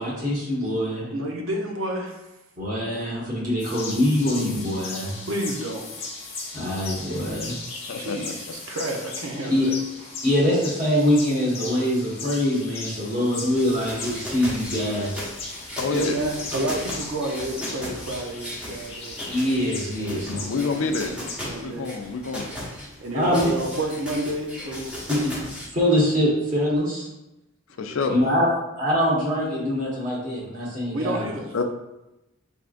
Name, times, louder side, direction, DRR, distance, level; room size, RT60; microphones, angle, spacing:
voice 1, 0.0-1.1 2.6-5.2 6.5-7.5 9.5-9.7 10.2-15.3 19.3-20.4 23.1-23.4 25.2-25.4 25.7-27.1 28.1-28.5 28.7-31.3, equal, 35° right, -5 dB, 1.4 m, -24 dB
voice 2, 1.1-2.2 5.3-6.1 8.0-9.8 15.9-19.2 20.0-21.9 23.0-25.1 27.8-28.3 30.9-31.5, right 1 dB, 70° right, 1 dB, 0.7 m, -30 dB
sound 1, 3.6-21.6, left 3 dB, 30° left, 0.8 m, -38 dB
voice 3, 7.9-8.3 15.8-16.2 20.5-21.1 21.6-22.5 27.8-28.2 31.5-31.6, left 4 dB, 65° left, 6 dB, 0.4 m, -27 dB
sound 2, 13.5-25.7, equal, 5° right, 0.7 m, -36 dB
6.1 x 3.5 x 2.5 m, 0.97 s
head